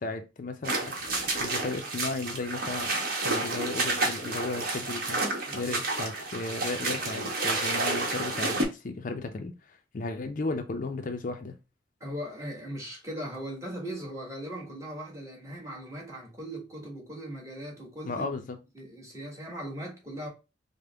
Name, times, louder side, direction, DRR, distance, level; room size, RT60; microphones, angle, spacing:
voice 1, 0.0-2.9 3.2-5.2 5.5-11.5 18.1-18.6, left 3 dB, 45° left, 0.5 m, -35 dB
sound 1, 0.6-8.7, right 2 dB, 55° right, 1.1 m, -30 dB
voice 2, 5.5-5.8 12.0-18.3 18.7-20.3, right 1 dB, 20° right, 1.4 m, -39 dB
5.0 x 2.1 x 3.3 m
head